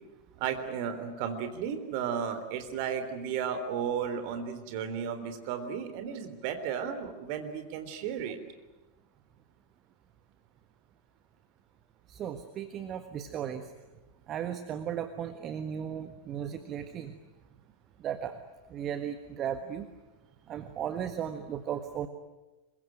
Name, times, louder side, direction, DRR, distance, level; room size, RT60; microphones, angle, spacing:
voice 1, 0.4-8.4, right 7 dB, 45° right, 9 dB, 3.6 m, -34 dB
voice 2, 12.1-13.7 14.3-17.1 18.0-18.4 18.7-19.9 20.5-22.1, right 9 dB, 30° right, 9 dB, 1.5 m, -36 dB
26.0 x 23.0 x 9.2 m, 1.1 s
figure-of-eight pair, 90°, 0 cm